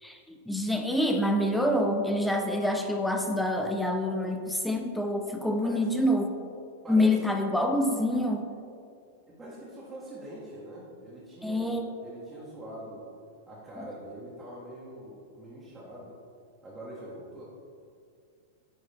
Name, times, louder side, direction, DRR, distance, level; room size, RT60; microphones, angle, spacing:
voice 1, 0.0-6.3 6.9-8.5 11.4-11.9, left 1 dB, 5° left, 3 dB, 0.5 m, -27 dB
voice 2, 5.4-5.9 6.8-7.2 9.3-13.0 13.5-16.1 16.6-17.4, right 1 dB, 20° right, -8 dB, 1.6 m, -44 dB
9.9 x 3.6 x 3.5 m, 2.3 s
hypercardioid pair, 120°, 0 cm